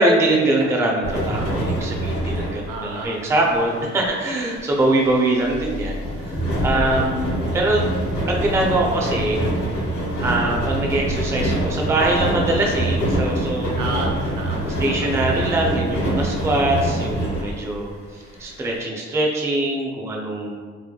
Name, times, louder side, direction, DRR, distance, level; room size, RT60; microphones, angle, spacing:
voice 1, 0.0-6.4 6.6-7.9 8.3-9.4 10.2-13.8 14.8-18.0 18.4-20.6, right 2 dB, 10° right, -1 dB, 0.3 m, -22 dB
sound 1, 1.0-17.9 18.4-18.5 18.7-18.8, right 1 dB, 65° left, 1.1 m, -25 dB
voice 2, 2.6-3.9 6.7-7.1 13.8-15.1, right 2 dB, 75° right, 0 dB, 0.5 m, -32 dB
2.8 x 2.1 x 2.2 m, 1.6 s
cardioid pair, 90°, 30 cm